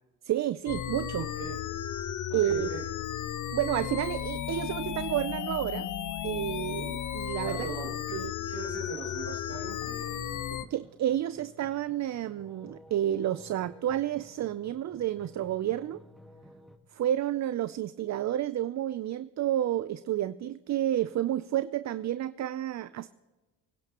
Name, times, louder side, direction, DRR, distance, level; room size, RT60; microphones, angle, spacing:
voice 1, 0.2-1.3 2.3-2.7 3.5-5.9 6.2-7.7 8.1-8.3 10.7-16.0 16.9-23.1, right 12 dB, 45° right, 14 dB, 0.5 m, -30 dB
sound 1, 0.7-10.7, left 10 dB, 50° left, 0.7 m, -34 dB
voice 2, 2.3-2.8 7.4-10.3, right 5 dB, 85° right, -4 dB, 2.4 m, -41 dB
sound 2, 9.6-16.8, equal, ahead, 1.5 m, -54 dB
25.0 x 10.5 x 2.9 m, 1.2 s
cardioid pair, 85°, 40 cm